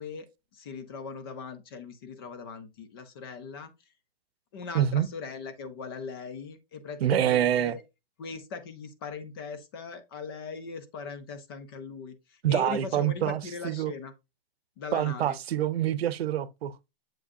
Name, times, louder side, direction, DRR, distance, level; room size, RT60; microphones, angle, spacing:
voice 1, 0.0-3.9 4.5-7.8 8.2-14.1 14.8-15.4, left 5 dB, 25° left, 0.5 m, -40 dB
voice 2, 4.7-5.1 7.0-7.7 12.4-13.9 14.9-16.9, right 11 dB, 90° right, 0.7 m, -26 dB
7.4 x 4.9 x 2.6 m
hypercardioid pair, 170°, 30 cm